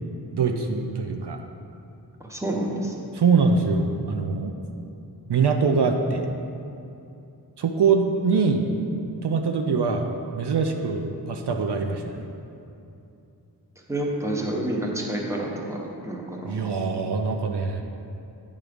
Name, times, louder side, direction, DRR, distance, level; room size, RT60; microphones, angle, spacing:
voice 1, 0.3-1.4 3.1-4.5 5.3-6.3 7.6-8.6 9.2-10.1 10.3-12.3 16.4-17.8, right 5 dB, 70° right, 4 dB, 0.6 m, -23 dB
voice 2, 2.3-2.9 13.9-16.5, right 1 dB, 5° right, -1 dB, 1.0 m, -28 dB
9.3 x 3.7 x 5.1 m, 2.7 s
wide cardioid pair, 85°, 41 cm